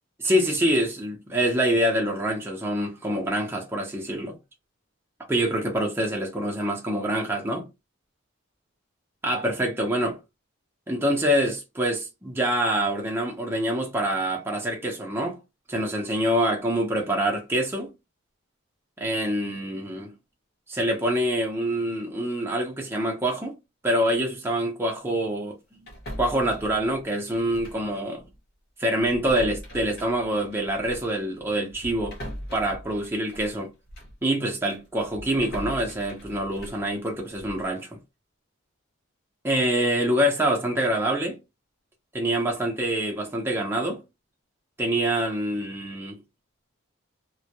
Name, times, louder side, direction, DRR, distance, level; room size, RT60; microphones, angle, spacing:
voice 1, 0.2-4.4 5.3-7.7 9.2-10.2 10.9-15.4 15.7-17.9 19.0-20.1 20.7-23.5 23.8-25.9 26.2-28.3 28.8-32.2 32.5-33.7 34.2-38.0 39.4-41.4 42.1-44.0 44.8-46.2, right 1 dB, 10° right, 0.5 m, -25 dB
sound 1, 25.9-27.9 28.2-28.4 29.0-34.2 34.6-37.7, equal, 50° left, 0.8 m, -41 dB
2.2 x 2.1 x 2.7 m
head